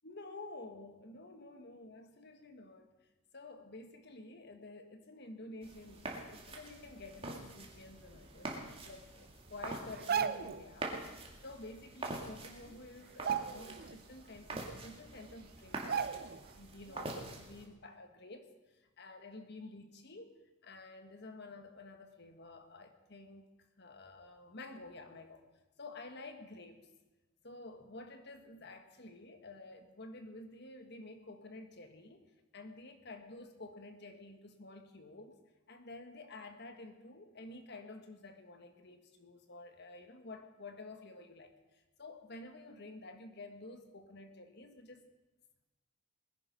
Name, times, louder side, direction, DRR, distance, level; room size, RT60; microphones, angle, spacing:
voice 1, 0.0-2.9 3.3-23.5 23.8-25.4 25.8-26.9 27.4-32.3 32.5-35.4 35.7-45.0, left 2 dB, 55° left, 7 dB, 1.6 m, -51 dB
sound 1, 5.6-17.7, right 2 dB, 30° right, 2.2 m, -45 dB
sound 2, 9.9-10.6 12.1-12.2 12.5-12.7 13.1-14.0 14.4-14.5 15.2-15.3 15.9-16.5 16.9-17.0, right 7 dB, 45° right, 0.6 m, -36 dB
20.5 x 10.5 x 5.4 m, 1.1 s
head